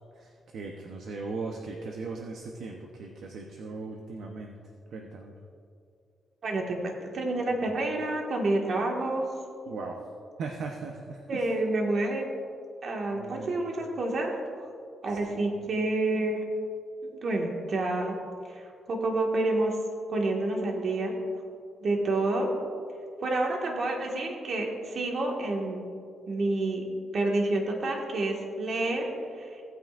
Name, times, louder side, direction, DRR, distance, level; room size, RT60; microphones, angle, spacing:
voice 1, 0.2-4.5 4.9-5.3 9.7-10.0 10.4-11.2 13.1-13.5 15.3-15.5, right 4 dB, 75° right, 2 dB, 0.8 m, -38 dB
voice 2, 6.4-9.3 11.3-12.3 12.8-14.3 14.6-14.7 15.0-16.5 17.0-18.1 18.4-19.8 20.1-21.1 21.8-22.5 23.2-25.8 26.3-26.8 27.1-29.6, right 2 dB, 55° right, 0 dB, 1.8 m, -29 dB
17.5 x 9.2 x 2.5 m, 2.4 s
cardioid pair, 95°, 0 cm